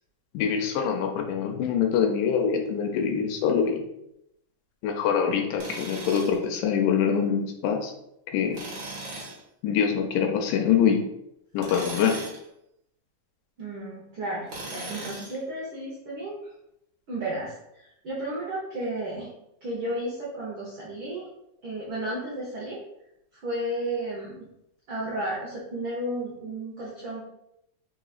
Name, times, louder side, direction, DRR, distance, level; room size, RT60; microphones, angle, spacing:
voice 1, 0.3-3.8 4.8-7.9 8.3-8.6 9.6-11.0 11.5-12.2, left 7 dB, 85° left, 3 dB, 2.1 m, -24 dB
Tools, 5.6-6.4 8.5-9.4 11.6-12.4 14.5-15.4, right 2 dB, 50° right, 1.5 m, -38 dB
voice 2, 13.6-16.4 17.1-19.3 19.6-21.3 21.6-22.8 23.3-24.5 24.9-27.2, right 1 dB, 90° right, -5 dB, 1.1 m, -33 dB
4.7 x 3.8 x 2.4 m, 0.82 s
omnidirectional pair, 3.7 m